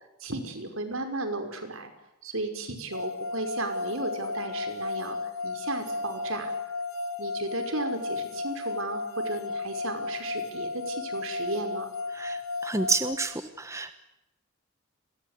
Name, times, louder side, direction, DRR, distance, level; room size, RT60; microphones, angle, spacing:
voice 1, 0.2-1.9 2.2-5.2 5.4-6.5 7.2-11.9, right 2 dB, 70° right, 6 dB, 5.6 m, -34 dB
sound 1, 2.9-13.1, left 3 dB, 80° left, 3.6 m, -34 dB
voice 2, 12.1-13.9, right 3 dB, 15° right, 10 dB, 1.3 m, -29 dB
30.0 x 22.0 x 8.4 m, 0.89 s
head